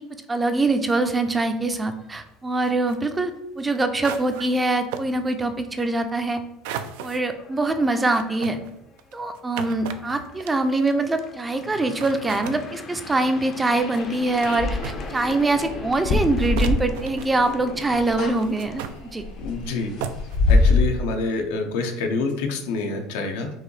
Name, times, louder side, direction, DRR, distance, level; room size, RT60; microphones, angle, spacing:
voice 1, 0.3-6.4 7.0-8.6 9.1-18.8 19.1-19.2, right 2 dB, 15° right, 8 dB, 0.4 m, -24 dB
sound 1, 1.7-2.3 2.6-2.7 3.0-3.2 3.6-3.7 5.4-5.6 6.1-6.2 6.6-18.8, left 4 dB, 35° left, 0.5 m, -41 dB
sound 2, 2.6-3.0 3.6-3.7 4.0-4.7 4.9-5.1 6.6-7.2 7.9-10.9 11.7-11.8 12.0-12.6 13.7-14.0 14.4-14.6 14.8-15.5 16.1-16.2 16.6-17.7 18.4-19.0 19.6-19.7 20.0-20.4, right 8 dB, 85° right, 0.3 m, -35 dB
sound 3, 13.8-17.4 17.7-18.4 18.7-20.8, left 3 dB, 55° left, 1.1 m, -23 dB
voice 2, 19.4-19.9 20.5-23.5, left 3 dB, 85° left, 4 dB, 0.8 m, -27 dB
4.7 x 2.9 x 3.2 m, 0.87 s
supercardioid pair, 125°, 0 cm